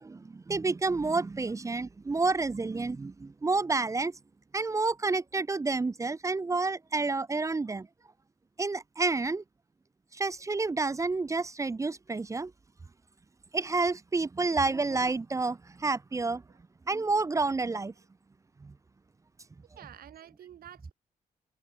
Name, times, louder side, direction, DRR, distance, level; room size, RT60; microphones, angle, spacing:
voice 1, 0.0-4.1 4.5-7.9 8.6-9.4 10.1-12.5 13.5-16.4 16.9-17.9 18.6-18.7, right 3 dB, 20° right, 0.5 m, -29 dB
voice 2, 19.7-20.9, right 11 dB, 85° right, 3.8 m, -50 dB
cardioid pair, 95°, 15 cm